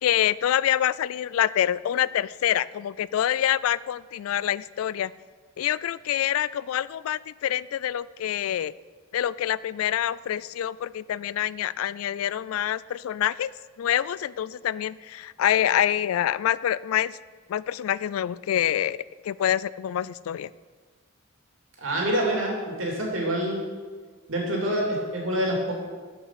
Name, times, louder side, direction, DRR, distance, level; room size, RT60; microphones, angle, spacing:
voice 1, 0.0-5.1 5.6-8.7 9.1-13.5 13.8-17.2 17.5-19.0 19.2-20.5, left 11 dB, 85° left, 20 dB, 0.3 m, -26 dB
voice 2, 21.8-23.6 24.3-25.7, right 1 dB, 70° right, -1 dB, 2.7 m, -26 dB
12.5 x 5.6 x 5.8 m, 1.5 s
head